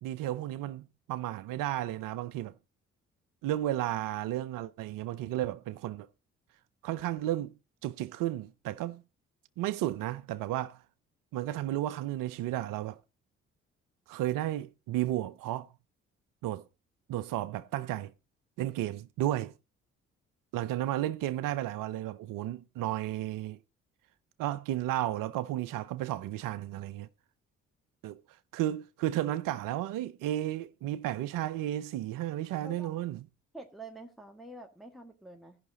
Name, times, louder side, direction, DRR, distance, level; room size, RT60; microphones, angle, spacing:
voice 1, 0.0-2.5 3.4-6.1 6.8-7.5 7.8-9.0 9.6-10.8 11.3-13.0 14.1-15.7 16.4-16.6 17.1-18.1 18.6-19.5 20.5-23.6 24.4-27.1 28.0-28.2 28.5-33.2, right 13 dB, 65° right, 0.6 m, -33 dB
voice 2, 33.5-35.6, right 2 dB, ahead, 1.6 m, -47 dB
16.0 x 5.8 x 4.1 m
hypercardioid pair, 40°, 35 cm